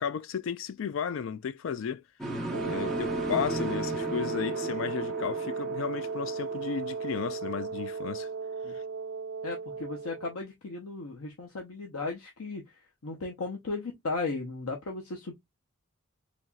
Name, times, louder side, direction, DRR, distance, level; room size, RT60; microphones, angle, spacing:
voice 1, 0.0-2.0 2.6-8.3 8.7-8.8, left 7 dB, 60° left, 0.3 m, -34 dB
sound 1, 2.2-8.2, right 1 dB, ahead, 1.1 m, -37 dB
Wind instrument woodwind instrument, 2.5-10.4, right 5 dB, 80° right, 0.5 m, -35 dB
voice 2, 9.4-12.6 13.0-15.3, left 3 dB, 90° left, 0.8 m, -36 dB
4.1 x 2.9 x 2.3 m
head